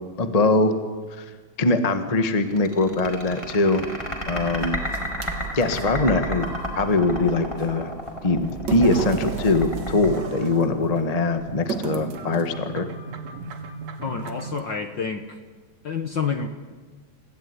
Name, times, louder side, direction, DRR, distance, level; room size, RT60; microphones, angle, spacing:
voice 1, 0.2-0.7 1.1-1.2 1.6-3.9 4.3-4.8 5.5-6.5 6.7-7.9 8.2-12.9, left 2 dB, 25° left, 8 dB, 0.7 m, -22 dB
sound 1, 2.6-11.2, right 1 dB, 10° left, 5.0 m, -31 dB
sound 2, 4.6-5.9 7.6-7.7 8.5-10.6 11.7-12.6 13.5-13.7 14.2-14.7, right 6 dB, 45° right, 1.6 m, -33 dB
sound 3, 8.8-14.6, right 3 dB, 75° right, 3.3 m, -36 dB
voice 2, 14.0-15.4 15.8-16.5, left 6 dB, 55° left, 7 dB, 1.3 m, -28 dB
28.5 x 16.0 x 9.9 m, 1.4 s
omnidirectional pair, 3.5 m